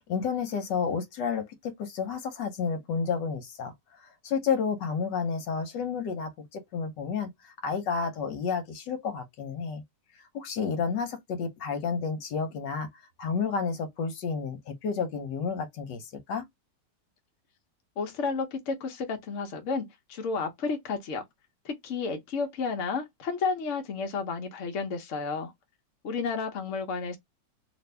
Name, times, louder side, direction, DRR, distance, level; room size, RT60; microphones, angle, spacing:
voice 1, 0.1-3.7 4.2-9.8 10.3-12.9 13.2-16.5, left 5 dB, 75° left, 1.4 m, -31 dB
voice 2, 18.0-21.2 21.6-25.5 26.0-27.2, left 4 dB, 55° left, 0.9 m, -32 dB
2.8 x 2.6 x 3.2 m
omnidirectional pair, 1.9 m